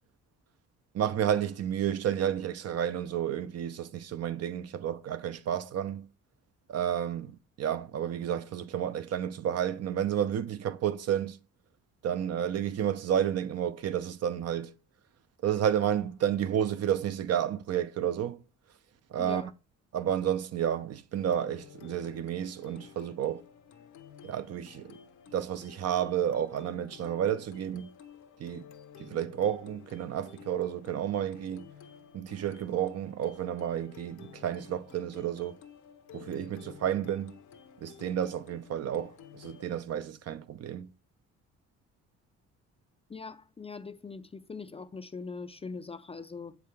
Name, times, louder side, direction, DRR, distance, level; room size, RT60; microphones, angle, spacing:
voice 1, 0.9-6.1 6.7-11.4 12.0-14.7 15.4-18.4 19.1-19.4 19.9-23.4 24.2-24.9 25.3-27.9 28.4-28.6 29.0-31.7 32.1-35.6 36.1-37.3 37.8-40.9, right 9 dB, 55° right, 0.6 m, -31 dB
voice 2, 19.2-19.5 43.1-46.6, left 4 dB, 20° left, 0.4 m, -41 dB
sound 1, 21.1-39.8, left 8 dB, 75° left, 0.9 m, -53 dB
7.5 x 4.8 x 3.4 m
cardioid pair, 90°, 30 cm